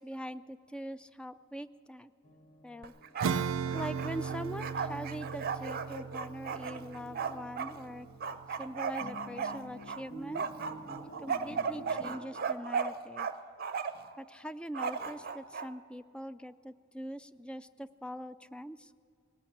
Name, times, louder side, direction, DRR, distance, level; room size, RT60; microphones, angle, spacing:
voice 1, 0.0-2.1 2.6-2.9 3.7-8.1 8.6-10.4 11.0-13.3 14.2-18.9, equal, 5° left, 13 dB, 0.3 m, -42 dB
sound 1, 2.2-12.2, equal, 40° left, 1.3 m, -51 dB
Bark, 2.8-3.4 3.7-7.7 8.2-10.0 10.3-13.3 13.6-14.1 14.7-15.7, right 6 dB, 50° right, 0.7 m, -35 dB
Acoustic guitar / Strum, 3.2-9.2, right 6 dB, 90° right, 0.4 m, -38 dB
19.5 x 8.5 x 8.6 m, 2.5 s
head